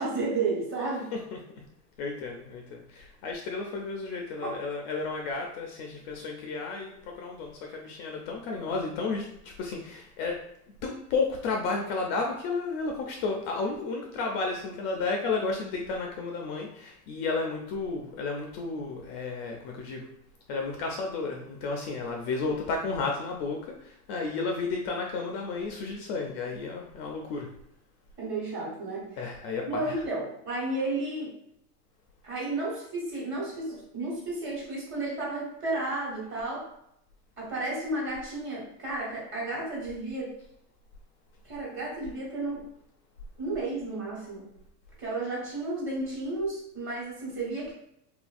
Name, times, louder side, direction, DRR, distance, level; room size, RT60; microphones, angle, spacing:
voice 1, 0.0-1.1 28.2-29.1 29.7-31.3 32.2-36.6 37.4-40.3 41.4-42.7 43.4-44.5 45.0-47.7, right 2 dB, 25° right, -4 dB, 1.3 m, -32 dB
voice 2, 2.0-10.4 10.8-20.1 20.5-27.5 29.2-30.0, left 4 dB, 45° left, 1 dB, 0.5 m, -32 dB
2.7 x 2.5 x 2.4 m, 0.77 s
hypercardioid pair, 115°, 48 cm